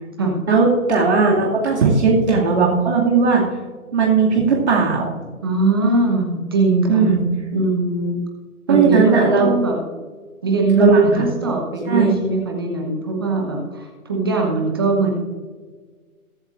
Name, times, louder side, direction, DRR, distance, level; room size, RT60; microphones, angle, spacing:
voice 1, 0.5-3.4 3.9-5.1 6.9-7.2 8.7-9.5 10.8-11.3 11.9-12.1, right 4 dB, 50° right, -3 dB, 2.4 m, -17 dB
voice 2, 5.4-7.1 7.5-8.2 8.7-9.7 10.4-15.1, right 3 dB, 15° right, 1 dB, 1.0 m, -20 dB
22.5 x 8.0 x 2.5 m, 1.5 s
hypercardioid pair, 165°, 44 cm